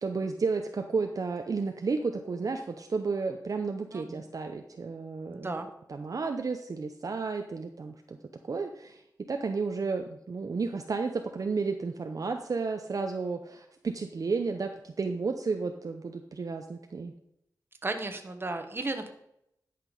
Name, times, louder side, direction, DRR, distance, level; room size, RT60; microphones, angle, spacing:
voice 1, 0.0-5.5 5.9-8.2 8.5-9.0 9.3-17.1, right 4 dB, 60° right, 5 dB, 0.7 m, -32 dB
voice 2, 3.9-4.2 5.3-5.7 17.8-19.1, right 2 dB, 35° right, 6 dB, 1.2 m, -34 dB
11.0 x 6.0 x 5.2 m, 0.77 s
wide cardioid pair, 105°, 7 cm